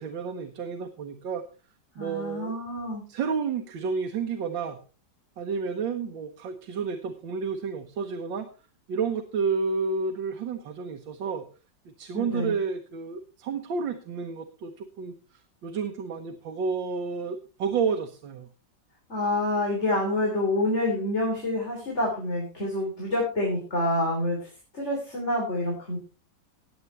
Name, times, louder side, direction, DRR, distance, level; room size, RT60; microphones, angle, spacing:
voice 1, 0.0-1.4 2.0-2.6 3.1-4.8 5.4-8.5 8.9-11.4 11.9-15.1 15.6-18.5, right 5 dB, 85° right, 6 dB, 1.8 m, -30 dB
voice 2, 2.0-3.0 12.1-12.5 19.1-24.5 24.7-26.0, left 1 dB, 35° left, -2 dB, 3.8 m, -27 dB
18.5 x 8.1 x 3.3 m, 0.34 s
omnidirectional pair, 2.0 m